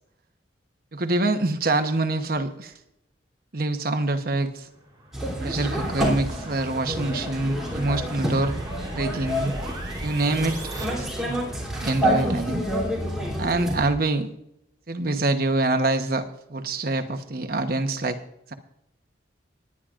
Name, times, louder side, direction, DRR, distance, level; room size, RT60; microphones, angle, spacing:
voice 1, 0.9-2.7 3.5-4.7 5.4-8.5 8.9-9.5 10.0-10.6 11.0-11.1 11.8-12.6 13.4-14.3 14.9-18.2, right 2 dB, 50° right, 7 dB, 1.0 m, -25 dB
sound 1, 4.5-10.8, right 2 dB, 20° right, 3.6 m, -42 dB
sound 2, 5.1-13.9, equal, ahead, 3.1 m, -28 dB
20.0 x 9.8 x 2.5 m, 0.80 s
head